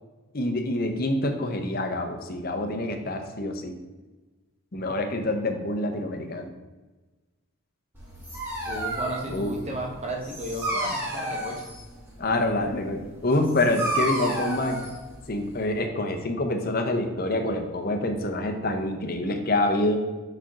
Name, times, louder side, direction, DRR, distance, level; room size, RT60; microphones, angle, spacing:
voice 1, 0.3-3.7 4.7-6.5 9.3-9.5 12.2-14.8 15.3-20.0, left 1 dB, 45° left, 5 dB, 0.7 m, -26 dB
Dog, 7.9-15.8, right 1 dB, 10° right, 1.7 m, -32 dB
voice 2, 8.6-11.6, right 1 dB, 30° right, 0 dB, 1.0 m, -34 dB
4.9 x 4.3 x 6.0 m, 1.2 s
head